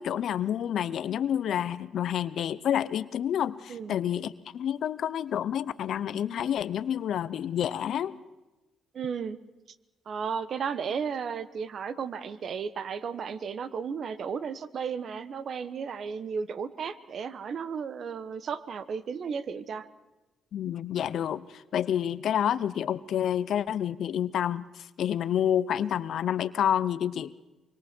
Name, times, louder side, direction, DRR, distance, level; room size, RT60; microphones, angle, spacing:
voice 1, 0.0-8.2 20.5-27.3, left 10 dB, 70° left, 16 dB, 0.6 m, -29 dB
voice 2, 8.9-9.4 10.1-19.9, right 6 dB, 55° right, 14 dB, 1.1 m, -34 dB
25.0 x 24.5 x 4.5 m, 1.1 s
cardioid pair, 90°, 0 cm